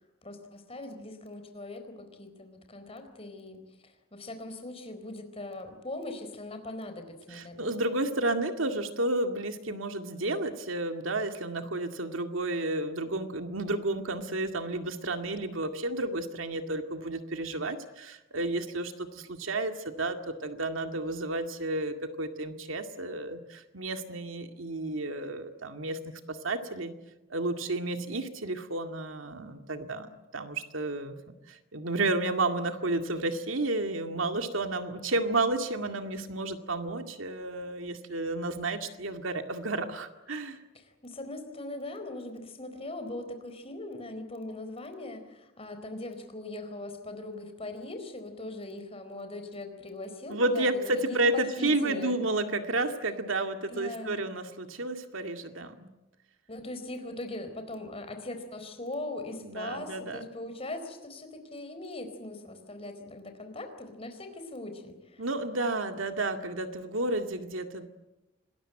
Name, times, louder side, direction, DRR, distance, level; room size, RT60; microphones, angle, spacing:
voice 1, 0.2-7.7 40.7-50.7 50.9-52.1 53.7-54.2 56.5-65.2, left 2 dB, 30° left, 7 dB, 4.2 m, -40 dB
voice 2, 7.3-26.9 27.3-31.2 31.5-40.6 50.3-55.9 59.4-60.2 65.2-67.9, right 2 dB, 80° right, 6 dB, 2.1 m, -31 dB
26.0 x 20.5 x 9.0 m, 0.99 s
head